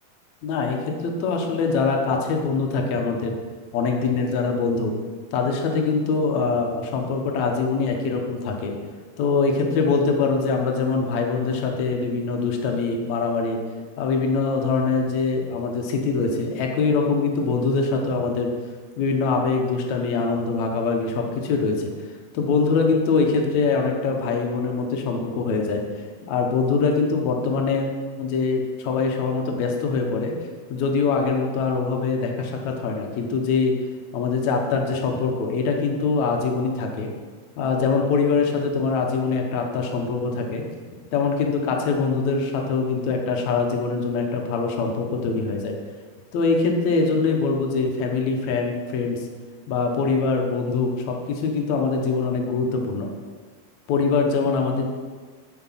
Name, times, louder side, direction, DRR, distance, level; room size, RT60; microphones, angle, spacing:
voice 1, 0.4-3.4 3.7-4.9 5.3-8.8 9.2-13.6 14.0-18.5 19.0-21.9 22.3-25.9 26.3-27.9 28.2-30.4 30.7-33.8 34.1-37.1 37.6-40.6 41.1-45.7 46.3-49.2 49.7-53.1 53.9-54.8, left 4 dB, 70° left, 2 dB, 1.8 m, -23 dB
13.5 x 5.0 x 5.7 m, 1.5 s
omnidirectional pair, 4.7 m